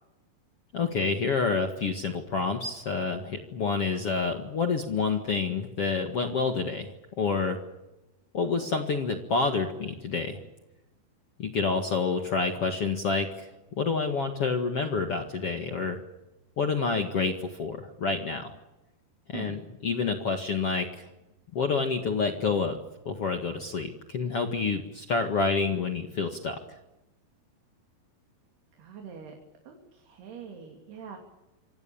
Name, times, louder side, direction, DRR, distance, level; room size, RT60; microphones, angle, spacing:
voice 1, 0.7-7.6 8.3-10.4 11.4-13.5 13.8-16.0 16.6-18.6 19.3-21.1 21.5-22.8 23.1-26.6, left 4 dB, 45° left, 4 dB, 2.3 m, -28 dB
voice 2, 28.8-29.3 29.7-31.2, right 7 dB, 80° right, 2 dB, 5.1 m, -43 dB
27.0 x 26.0 x 7.2 m, 0.99 s
omnidirectional pair, 4.5 m